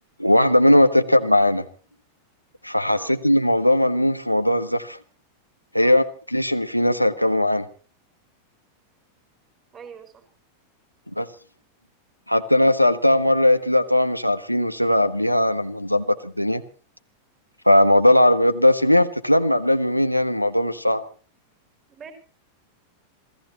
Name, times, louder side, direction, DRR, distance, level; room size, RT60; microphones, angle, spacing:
voice 1, 0.2-1.6 2.6-5.0 5.7-7.7 11.2-11.3 12.3-16.6 17.6-21.0, left 1 dB, 90° left, 9 dB, 1.4 m, -19 dB
voice 2, 9.7-10.2 21.9-22.1, right 6 dB, 25° right, 7 dB, 5.1 m, -43 dB
27.5 x 17.0 x 3.0 m, 0.38 s
figure-of-eight pair, 90°, 0 cm